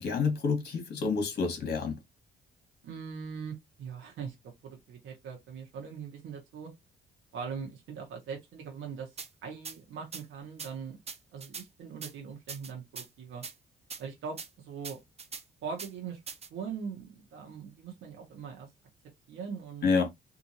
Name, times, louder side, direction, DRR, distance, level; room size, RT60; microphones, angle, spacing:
voice 1, 0.0-2.0 19.8-20.1, left 5 dB, 55° left, 1.7 m, -28 dB
voice 2, 2.8-4.3 4.6-6.7 7.3-9.1 9.4-11.0 11.3-13.4 14.0-15.0 15.6-16.2 16.5-18.7 19.3-19.9, right 6 dB, 80° right, 1.1 m, -41 dB
sound 1, 9.2-9.3 9.6-9.8 10.1-10.2 10.6-10.7 11.1-11.6 12.0-12.1 12.5-13.1 13.4-13.5 13.9-14.0 14.4-14.5 14.8-15.4 15.8-15.9 16.3-16.5, right 5 dB, 30° right, 0.7 m, -41 dB
3.7 x 2.6 x 2.9 m
cardioid pair, 90°, 20 cm